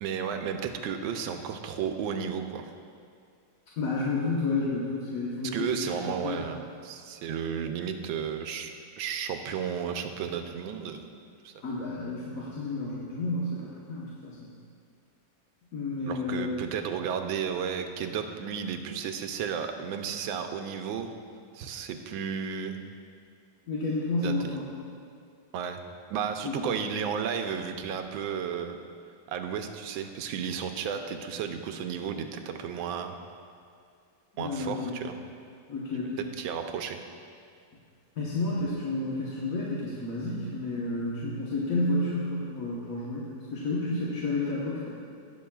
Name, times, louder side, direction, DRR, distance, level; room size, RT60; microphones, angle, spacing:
voice 1, 0.0-2.6 5.5-11.1 11.4-11.5 16.1-21.1 21.5-22.9 24.2-24.6 25.5-25.8 26.1-28.8 29.3-33.2 34.4-35.2 36.2-37.0, right 7 dB, 85° right, 6 dB, 1.4 m, -33 dB
voice 2, 3.8-6.4 11.6-14.5 15.7-16.5 23.7-24.7 26.4-26.8 34.3-35.0 35.7-36.2 38.2-44.9, left 2 dB, 50° left, -7 dB, 1.4 m, -31 dB
19.0 x 7.1 x 2.3 m, 2.3 s
omnidirectional pair, 2.1 m